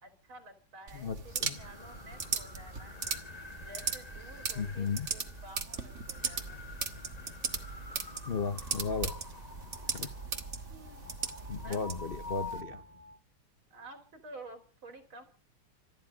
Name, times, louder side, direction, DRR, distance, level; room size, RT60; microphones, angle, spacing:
voice 1, 0.0-3.0 3.5-6.6 7.2-7.7 10.7-11.0 11.4-11.8 13.7-15.2, right 2 dB, 80° right, 7 dB, 4.0 m, -51 dB
voice 2, 0.9-1.6 4.6-5.1 8.3-9.1 9.9-10.1 11.5-12.8, left 5 dB, 50° left, 10 dB, 0.6 m, -35 dB
sound 1, 0.9-12.6, right 5 dB, 40° right, 1.5 m, -38 dB
sound 2, 1.1-13.2, left 3 dB, 25° left, 1.0 m, -48 dB
26.0 x 10.5 x 5.1 m, 0.40 s
omnidirectional pair, 2.2 m